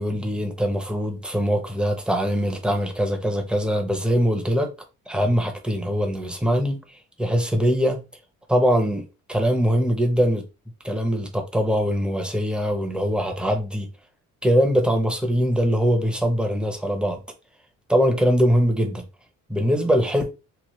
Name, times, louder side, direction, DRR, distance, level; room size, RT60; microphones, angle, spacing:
voice 1, 0.0-4.7 5.1-6.8 7.2-8.0 8.5-10.4 10.8-13.9 14.4-17.2 17.9-19.0 19.5-20.4, equal, 5° right, 0.7 m, -22 dB
3.1 x 2.0 x 3.1 m
cardioid pair, 90°, 30 cm